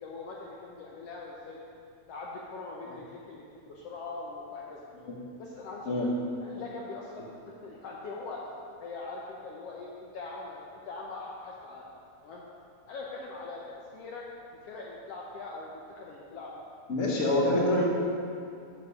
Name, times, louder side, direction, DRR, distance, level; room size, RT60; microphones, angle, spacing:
voice 1, 0.0-1.6 2.1-4.9 5.4-6.1 6.4-8.5 8.8-11.9 12.2-12.4 12.9-14.2 14.6-16.5 17.2-17.4, left 3 dB, 75° left, -3 dB, 1.5 m, -42 dB
voice 2, 16.9-17.8, left 1 dB, 50° left, -3 dB, 0.9 m, -26 dB
6.7 x 6.6 x 5.6 m, 2.5 s
omnidirectional pair, 3.4 m